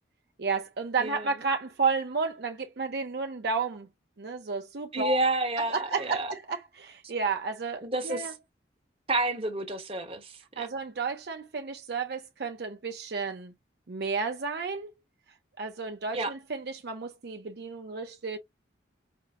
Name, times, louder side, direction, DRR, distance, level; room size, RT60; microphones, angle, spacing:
voice 1, 0.4-3.9 4.2-5.2 5.7-8.3 10.6-13.5 13.9-14.9 15.6-18.4, right 4 dB, 60° right, 0.6 m, -32 dB
voice 2, 1.0-1.3 4.9-6.3 7.8-8.3 9.1-10.7 16.1-16.3, right 2 dB, 30° right, 1.0 m, -30 dB
5.3 x 2.0 x 3.5 m
head